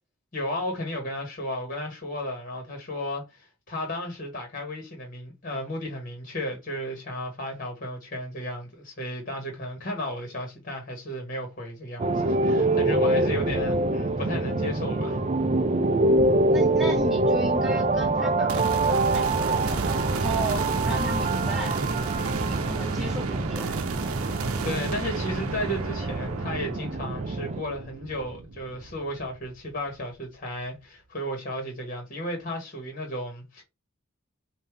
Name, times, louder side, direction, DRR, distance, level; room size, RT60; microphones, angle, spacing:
voice 1, 0.3-15.2 24.6-33.6, left 1 dB, 40° left, 1.7 m, -34 dB
sound 1, 12.0-27.6, right 2 dB, 30° right, 0.4 m, -25 dB
voice 2, 16.5-23.8, right 1 dB, ahead, 1.6 m, -35 dB
sound 2, 18.5-29.8, right 4 dB, 85° right, 0.7 m, -33 dB
5.4 x 2.7 x 3.3 m
head